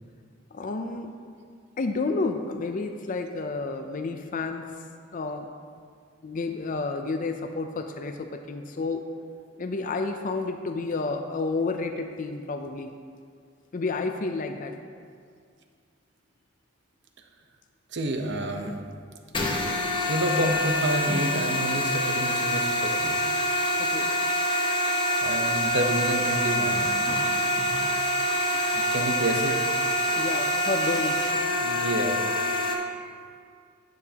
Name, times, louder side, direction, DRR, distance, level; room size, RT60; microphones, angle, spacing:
voice 1, 0.5-1.1 1.8-4.6 5.1-5.5 6.2-9.1 9.6-13.0 13.7-14.8 20.1-20.2 23.8-24.1 30.2-31.2, left 3 dB, 40° left, 6 dB, 0.4 m, -30 dB
voice 2, 17.9-18.8 20.1-23.2 25.2-26.9 28.7-29.6 31.6-32.2, right 1 dB, 60° right, 4 dB, 0.8 m, -29 dB
sound 1, 19.3-32.7, equal, 25° left, 0.9 m, -26 dB
10.5 x 9.3 x 2.9 m, 2.1 s
head